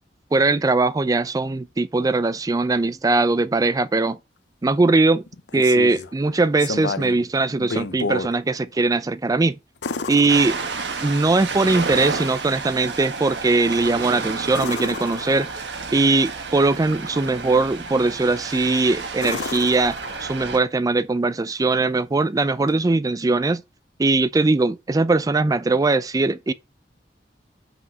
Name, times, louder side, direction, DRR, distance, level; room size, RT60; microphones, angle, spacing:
voice 1, 0.3-4.2 4.6-5.2 5.5-9.6 10.1-10.6 11.0-15.5 15.9-23.6 24.0-26.5, right 3 dB, 20° right, 0.4 m, -20 dB
sound 1, 5.3-6.1 6.6-7.2 7.6-8.3 9.8-11.1 14.5-15.8 18.3-18.7 19.2-20.6 22.7-22.8, left 4 dB, 75° left, 0.7 m, -31 dB
Ocean, 10.3-20.6, right 4 dB, 90° right, 1.3 m, -31 dB
5.9 x 5.1 x 5.4 m
head